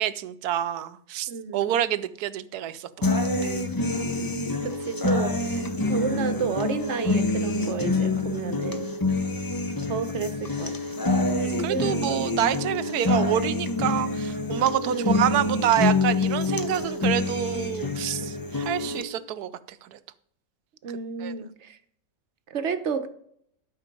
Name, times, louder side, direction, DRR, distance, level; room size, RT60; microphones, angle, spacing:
voice 1, 0.0-3.5 11.4-20.0 21.2-21.3, right 11 dB, 80° right, 14 dB, 1.2 m, -27 dB
voice 2, 1.3-1.7 4.6-8.9 9.9-10.8 11.5-12.3 12.6-13.0 14.8-15.2 20.8-21.8 22.5-23.1, right 6 dB, 55° right, 10 dB, 1.0 m, -31 dB
sound 1, 3.0-19.0, left 3 dB, 25° left, 0.4 m, -26 dB
12.5 x 6.0 x 5.3 m, 0.67 s
omnidirectional pair, 1.6 m